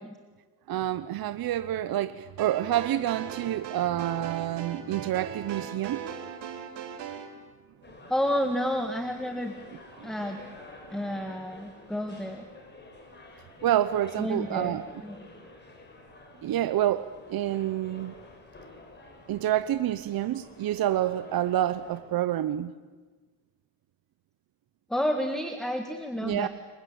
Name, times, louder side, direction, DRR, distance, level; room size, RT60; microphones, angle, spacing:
voice 1, 0.7-6.0 10.0-10.1 13.6-14.8 16.4-18.1 19.3-22.7 26.2-26.5, right 12 dB, 60° right, 12 dB, 1.0 m, -28 dB
sound 1, 2.4-7.3, right 8 dB, 80° right, 4.1 m, -39 dB
sound 2, 7.8-22.0, left 2 dB, 25° left, 6.0 m, -50 dB
voice 2, 8.1-9.5 10.0-10.4 10.9-12.5 14.2-15.3 24.9-26.5, equal, ahead, 6 dB, 1.8 m, -30 dB
28.5 x 23.5 x 8.7 m, 1.3 s
cardioid pair, 140°, 41 cm